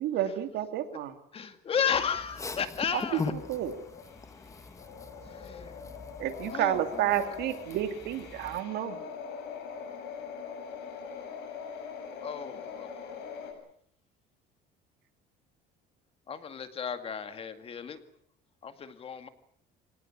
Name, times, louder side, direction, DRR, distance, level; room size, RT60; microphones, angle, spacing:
voice 1, 0.0-1.2 2.9-3.7 6.2-9.0, right 12 dB, 70° right, 2.7 m, -30 dB
voice 2, 1.3-3.3 5.3-5.9 6.5-7.4 12.2-13.1 16.3-18.0 18.6-19.3, left 7 dB, 30° left, 2.2 m, -34 dB
sound 1, 2.7-13.5, left 6 dB, 70° left, 7.4 m, -43 dB
voice 3, 4.1-6.2, left 4 dB, 15° left, 1.9 m, -39 dB
24.5 x 19.0 x 8.8 m
cardioid pair, 150°, 18 cm